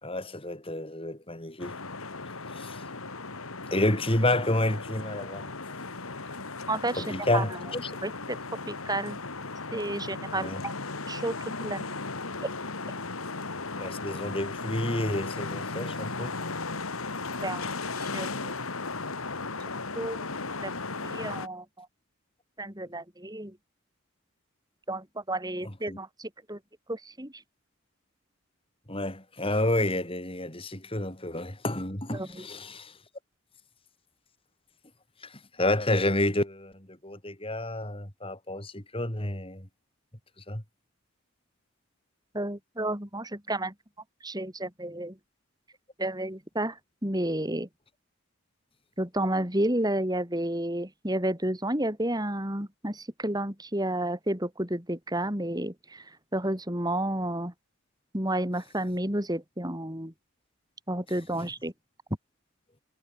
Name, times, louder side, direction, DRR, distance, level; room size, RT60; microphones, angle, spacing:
voice 1, 0.0-1.8 2.5-2.8 3.7-5.5 7.0-8.0 10.4-10.6 13.7-16.4 25.6-26.0 28.9-33.0 35.2-39.7 40.5-40.6 61.4-61.5, left 1 dB, 25° left, 4.3 m, -30 dB
sound 1, 1.6-21.5, left 3 dB, 75° left, 2.7 m, -36 dB
voice 2, 6.7-7.0 7.3-7.4 8.0-8.4 8.7-9.2 9.7-10.7 11.1-11.8 17.4-17.7 18.0-18.5 20.0-20.3 20.6-20.7 21.0-21.9 22.6-23.6 24.9-26.6 26.9-27.3 32.1-32.4 42.3-43.7 44.2-45.1 46.0-47.7 49.0-56.0 56.3-57.5 58.1-60.1 60.9-61.7, right 1 dB, 20° right, 4.7 m, -31 dB
head